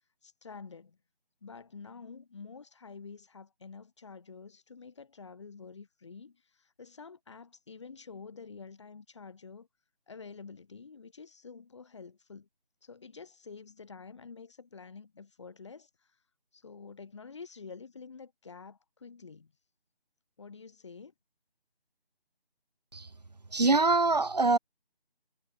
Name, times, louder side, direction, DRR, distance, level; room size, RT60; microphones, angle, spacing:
voice 1, 0.2-1.0 1.4-9.7 10.1-12.5 12.8-15.9 16.5-19.5 20.4-21.1, left 5 dB, 30° left, 6.1 m, -48 dB
voice 2, 23.5-24.6, right 3 dB, 40° right, 1.6 m, -24 dB
figure-of-eight pair, 165°, 30 cm